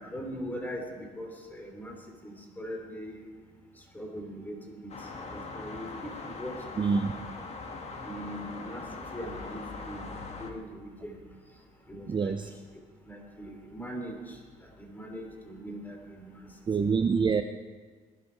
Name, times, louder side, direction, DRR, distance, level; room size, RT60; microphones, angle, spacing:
voice 1, 0.0-1.9 2.2-3.3 3.9-4.9 5.3-7.1 8.0-8.8 9.1-10.1 10.4-11.2 11.9-12.4 13.0-14.4 14.8-16.4, equal, 10° left, 2 dB, 3.5 m, -40 dB
sound 1, 4.9-10.5, left 3 dB, 40° left, 2.0 m, -41 dB
voice 2, 6.8-7.1 12.1-12.5 16.7-17.4, right 5 dB, 30° right, 7 dB, 0.6 m, -26 dB
19.5 x 11.5 x 4.7 m, 1.4 s
cardioid pair, 110°, 17 cm